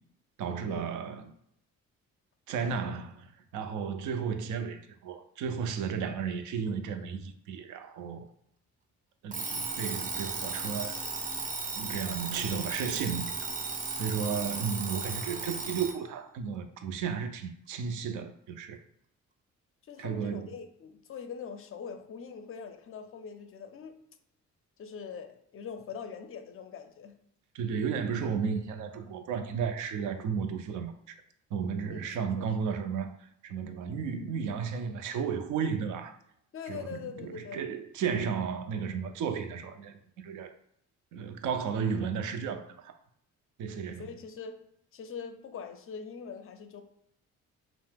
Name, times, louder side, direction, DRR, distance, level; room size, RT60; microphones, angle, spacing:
voice 1, 0.4-1.2 2.5-8.3 9.2-11.0 11.8-13.5 14.0-18.8 20.0-20.5 27.5-31.1 31.5-36.2 36.7-40.5 41.1-42.9 43.6-44.1, right 6 dB, 80° right, 0.5 m, -34 dB
Alarm, 9.3-16.0, right 4 dB, 25° right, 0.4 m, -35 dB
voice 2, 19.9-24.0 24.8-27.2 31.9-32.5 36.5-37.7 44.0-44.7 44.9-46.8, left 6 dB, 45° left, 0.4 m, -43 dB
2.7 x 2.0 x 3.4 m
cardioid pair, 90°, 30 cm